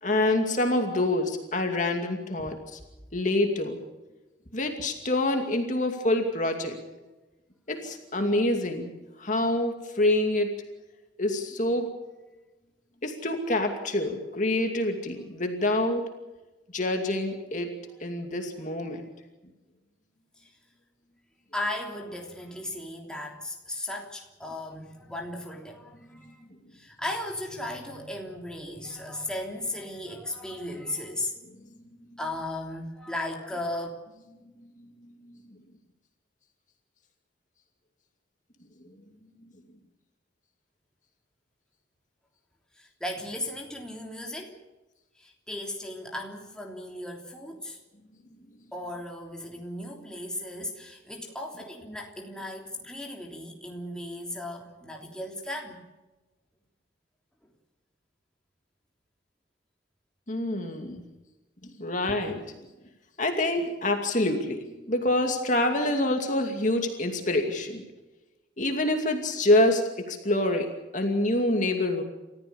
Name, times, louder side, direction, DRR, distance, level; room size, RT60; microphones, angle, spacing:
voice 1, 0.0-2.8 3.1-3.8 4.5-6.8 7.7-8.9 9.2-10.5 11.2-11.9 13.0-16.0 16.7-17.7 18.0-19.0 60.3-61.0 61.6-62.4 63.2-64.6 64.9-67.8 68.6-72.0, left 1 dB, 40° left, 4 dB, 2.5 m, -26 dB
voice 2, 21.5-26.4 26.7-31.3 32.2-33.9 42.8-44.6 45.2-47.8 48.7-55.8, left 1 dB, 5° left, 0 dB, 3.2 m, -36 dB
30.0 x 14.5 x 7.1 m, 1.1 s
head